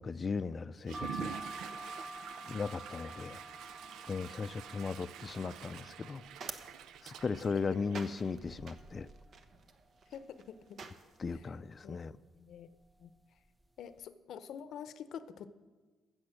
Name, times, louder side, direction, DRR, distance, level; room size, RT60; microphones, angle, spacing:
voice 1, 0.0-1.4 2.4-3.4 4.1-6.2 7.0-9.1 11.2-12.2, left 5 dB, 35° left, 16 dB, 0.4 m, -37 dB
Water / Toilet flush, 0.8-8.5, right 9 dB, 85° right, 0.5 m, -47 dB
sound 1, 0.9-6.6 7.1-7.8 8.2-8.3 8.5-9.6 10.1-10.5 11.2-11.6 12.4-12.6 12.9-13.1, right 1 dB, 10° right, 0.5 m, -48 dB
sound 2, 5.8-11.4, right 4 dB, 55° right, 1.1 m, -50 dB
voice 2, 10.1-10.8 11.8-12.0 12.4-12.7 13.0-13.1 13.8-15.5, left 8 dB, 75° left, 13 dB, 0.7 m, -46 dB
15.0 x 7.0 x 6.4 m, 1.4 s
cardioid pair, 90°, 0 cm